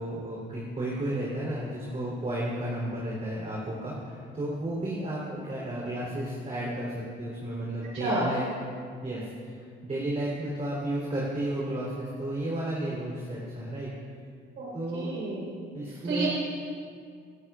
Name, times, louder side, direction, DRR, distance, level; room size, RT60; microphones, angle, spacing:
voice 1, 0.0-8.5 9.0-13.9 14.7-15.1 15.7-16.3, right 1 dB, 35° right, -5 dB, 3.5 m, -33 dB
voice 2, 7.9-8.3 14.6-15.5 16.0-16.3, right 2 dB, 80° right, -6 dB, 3.8 m, -30 dB
27.5 x 9.3 x 2.5 m, 2.2 s
cardioid pair, 90°, 20 cm